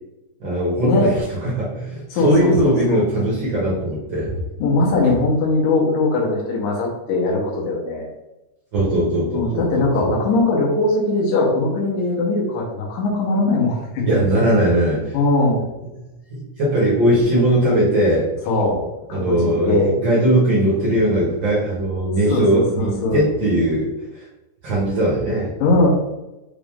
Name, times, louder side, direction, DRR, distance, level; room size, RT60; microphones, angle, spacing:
voice 1, 0.4-4.3 8.7-10.2 14.1-15.1 16.3-18.3 19.1-23.9 24.1-24.2 24.6-25.5, right 1 dB, 65° right, -6 dB, 1.1 m, -19 dB
voice 2, 2.1-3.0 4.6-8.1 9.3-14.1 15.1-15.6 18.5-18.8 19.1-20.0 22.3-23.2 25.6-25.9, left 2 dB, 70° left, -3 dB, 2.5 m, -20 dB
5.9 x 2.5 x 3.5 m, 0.99 s
omnidirectional pair, 3.8 m